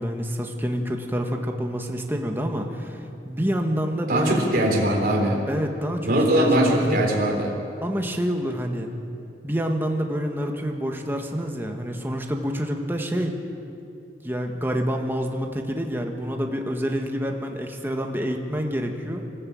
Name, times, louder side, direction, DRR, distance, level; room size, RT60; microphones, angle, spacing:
voice 1, 0.0-4.5 5.5-7.0 7.8-8.9 9.4-13.4 14.2-19.3, equal, 10° right, 2 dB, 1.6 m, -27 dB
voice 2, 4.1-5.4 6.1-7.5, right 1 dB, 55° right, 0 dB, 3.6 m, -21 dB
26.0 x 14.0 x 8.6 m, 2.7 s
head